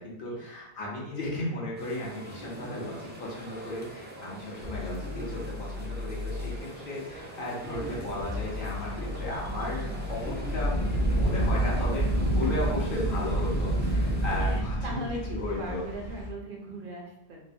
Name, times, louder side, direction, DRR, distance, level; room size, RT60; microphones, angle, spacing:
voice 1, 0.0-10.8 11.1-15.0 15.3-15.8, left 1 dB, 60° left, -4 dB, 0.9 m, -35 dB
sound 1, 1.8-14.6, equal, 15° right, 0.3 m, -42 dB
sound 2, 4.6-6.6 8.1-12.4, left 2 dB, 90° right, 1.1 m, -37 dB
sound 3, 7.7-16.3, right 1 dB, 45° left, 0.6 m, -29 dB
voice 2, 14.4-17.4, right 1 dB, 65° right, -1 dB, 0.7 m, -39 dB
3.1 x 2.0 x 2.6 m, 0.88 s
omnidirectional pair, 1.0 m